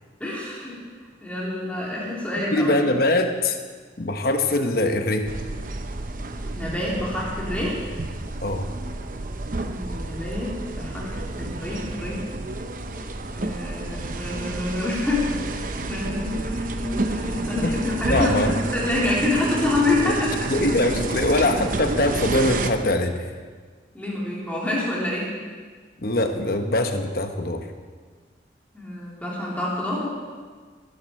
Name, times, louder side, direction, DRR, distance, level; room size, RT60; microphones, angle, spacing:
voice 1, 0.2-0.8 1.2-2.7 6.5-7.8 9.7-12.3 13.4-15.5 15.8-20.3 23.9-25.3 28.7-30.1, left 2 dB, 10° left, -6 dB, 3.1 m, -27 dB
voice 2, 2.5-3.6 4.0-5.3 8.4-8.7 17.6-17.7 18.1-18.5 20.1-20.2 20.5-23.3 26.0-27.7, left 1 dB, 55° left, 6 dB, 1.0 m, -22 dB
sound 1, 5.3-22.7, right 2 dB, 50° right, 0.8 m, -30 dB
19.0 x 11.0 x 4.3 m, 1.5 s
head